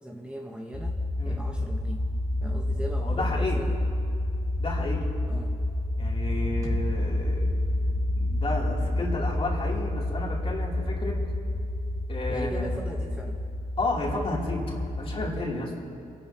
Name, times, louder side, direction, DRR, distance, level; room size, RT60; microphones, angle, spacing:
voice 1, 0.0-2.1 2.4-3.7 5.3-5.6 12.3-13.4, right 1 dB, 5° right, 0 dB, 1.1 m, -39 dB
sound 1, 0.7-15.4, left 1 dB, 20° left, 2.3 m, -29 dB
voice 2, 3.0-3.6 4.6-5.1 6.0-7.5 8.2-11.2 12.1-12.8 13.8-15.7, left 2 dB, 40° left, -3 dB, 3.2 m, -32 dB
sound 2, 6.6-10.5, right 1 dB, 25° right, 4.1 m, -44 dB
25.5 x 12.0 x 3.0 m, 2.5 s
cardioid pair, 70°, 15 cm